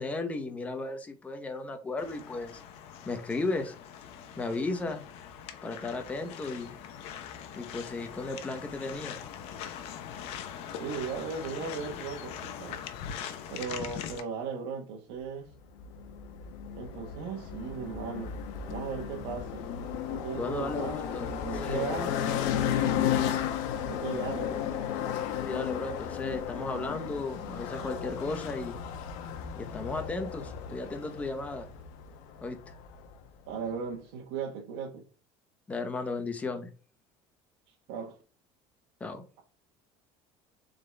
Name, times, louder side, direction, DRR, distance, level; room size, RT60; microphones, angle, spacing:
voice 1, 0.0-2.6 3.1-3.8 4.4-5.0 5.6-6.8 7.6-9.2 20.3-21.9 25.4-28.8 29.6-31.7 32.4-32.6 35.7-36.7 39.0-39.2, left 3 dB, 10° left, 0.8 m, -35 dB
sound 1, 2.0-14.2, left 8 dB, 55° left, 0.9 m, -42 dB
voice 2, 10.8-12.8 13.5-15.5 16.7-18.4 18.7-19.6 20.1-22.1 23.9-24.8 33.5-35.0 37.7-38.2, right 6 dB, 90° right, 1.3 m, -37 dB
sound 2, 15.8-33.2, left 9 dB, 75° left, 1.0 m, -34 dB
7.0 x 4.1 x 3.4 m
cardioid pair, 180°, 12 cm